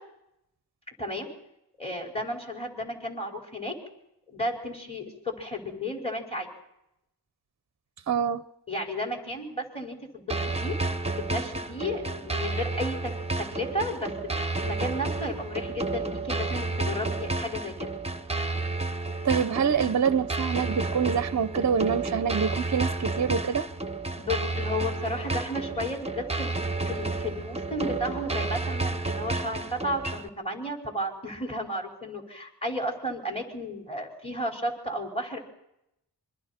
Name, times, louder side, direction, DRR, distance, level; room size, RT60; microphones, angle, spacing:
voice 1, 1.8-3.7 4.3-6.5 8.7-10.8 11.3-13.1 13.5-17.9 24.2-35.4, left 1 dB, 15° left, 5.1 m, -33 dB
voice 2, 8.1-8.4 19.2-23.7, right 7 dB, 40° right, 0.7 m, -26 dB
sound 1, 10.3-30.3, right 3 dB, 15° right, 1.0 m, -31 dB
27.0 x 24.0 x 4.4 m
wide cardioid pair, 80°, 41 cm